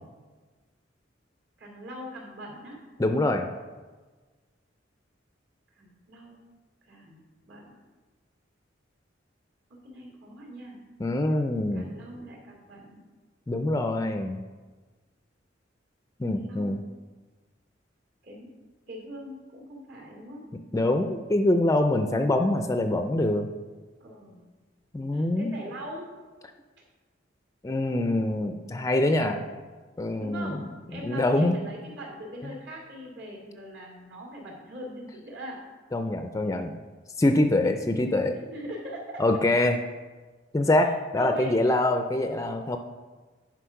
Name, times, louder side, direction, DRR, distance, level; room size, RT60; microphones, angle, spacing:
voice 1, 1.6-2.8 5.8-6.4 6.8-7.6 9.7-10.8 11.7-13.0 16.3-16.8 18.2-18.5 18.9-20.5 24.0-24.4 25.1-26.1 30.2-35.6 38.3-39.4 41.2-41.6, equal, 65° right, -1 dB, 2.6 m, -41 dB
voice 2, 3.0-3.5 11.0-11.9 13.5-14.4 16.2-16.8 20.7-23.5 24.9-25.5 27.6-29.4 30.0-30.6 31.0-31.6 35.9-36.7 37.2-38.4 39.2-39.8 40.5-42.8, left 1 dB, 15° left, 6 dB, 0.4 m, -24 dB
10.0 x 4.9 x 5.8 m, 1.3 s
head